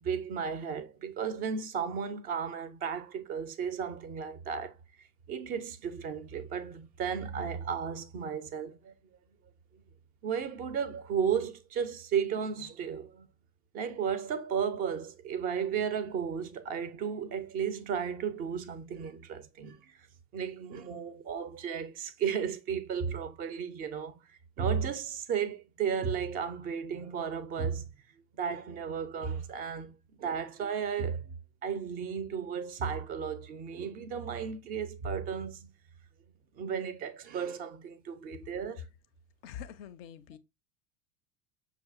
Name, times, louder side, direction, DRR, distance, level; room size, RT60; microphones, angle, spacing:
voice 1, 0.0-4.8 5.3-8.9 10.2-13.3 13.7-20.0 20.3-24.2 24.6-27.9 28.4-31.3 31.6-35.7 36.6-38.9, right 7 dB, 20° right, 0.4 m, -34 dB
voice 2, 39.4-40.4, left 9 dB, 45° left, 0.4 m, -44 dB
5.7 x 2.4 x 2.3 m
figure-of-eight pair, 75°, 43 cm